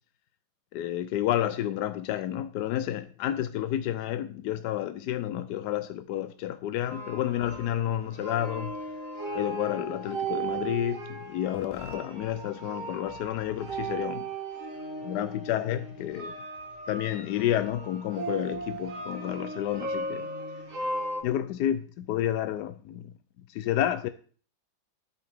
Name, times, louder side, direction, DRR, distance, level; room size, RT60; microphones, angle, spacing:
voice 1, 0.7-8.7 9.3-14.3 15.0-16.3 16.9-20.2 21.2-23.1 23.5-24.1, left 12 dB, 75° left, 0.9 m, -30 dB
sound 1, 6.9-21.2, right 3 dB, 40° right, 1.8 m, -37 dB
12.5 x 5.7 x 3.4 m
omnidirectional pair, 2.1 m